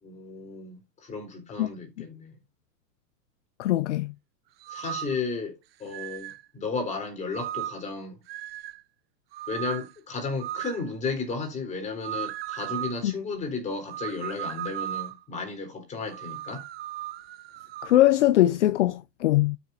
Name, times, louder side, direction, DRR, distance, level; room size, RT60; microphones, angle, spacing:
voice 1, 0.0-2.3 4.7-5.5 5.8-8.2 9.5-16.6, left 4 dB, 15° left, 3.7 m, -34 dB
voice 2, 3.6-4.1 13.0-13.1 17.8-19.6, left 14 dB, 50° left, 0.4 m, -21 dB
sound 1, 4.6-5.2 5.9-6.4 7.3-7.9 8.3-8.8 9.3-9.9 10.4-10.8 12.0-13.0 13.9-15.2 16.1-18.0, right 13 dB, 35° right, 0.6 m, -36 dB
12.5 x 6.6 x 2.7 m
hypercardioid pair, 155°, 50 cm